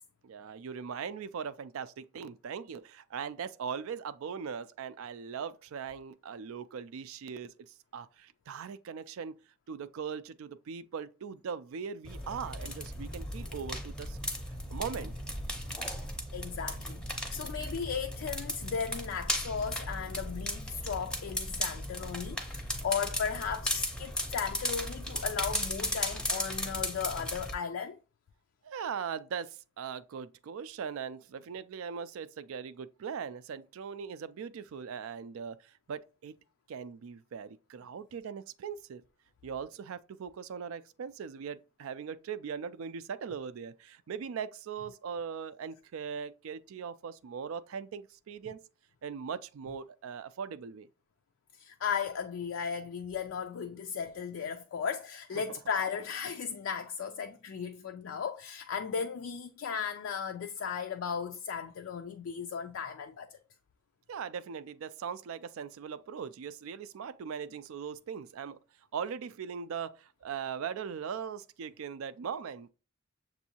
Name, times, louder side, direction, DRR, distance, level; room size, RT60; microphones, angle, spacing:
voice 1, 0.2-9.4 9.7-14.2 14.7-15.1 28.6-36.4 36.7-39.0 39.4-48.6 49.0-50.9 55.3-55.6 64.1-68.6 68.9-72.7, right 6 dB, 75° right, 0.3 m, -40 dB
sound 1, 12.0-27.5, left 1 dB, 5° left, 0.6 m, -36 dB
voice 2, 16.3-28.0 51.5-63.4, left 6 dB, 65° left, 0.3 m, -36 dB
6.9 x 2.7 x 2.8 m
head